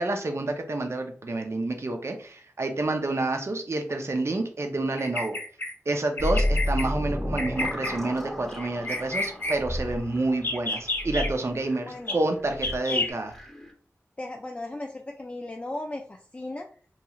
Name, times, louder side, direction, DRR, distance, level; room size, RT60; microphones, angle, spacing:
voice 1, 0.0-5.4 5.9-13.3, right 2 dB, 55° right, 4 dB, 0.5 m, -29 dB
Bird vocalization bird call bird song, 5.0-5.7 6.2-6.8 7.4-8.0 8.6-9.6 10.3-11.3 12.1-12.2 12.6-13.1, left 2 dB, 45° left, 0.7 m, -30 dB
sound 1, 6.2-13.7, left 1 dB, 5° left, 0.8 m, -32 dB
voice 2, 11.9-12.2 12.9-13.1 14.2-16.7, left 2 dB, 25° left, 2 dB, 0.3 m, -36 dB
3.0 x 2.8 x 2.3 m, 0.42 s
wide cardioid pair, 65°, 6 cm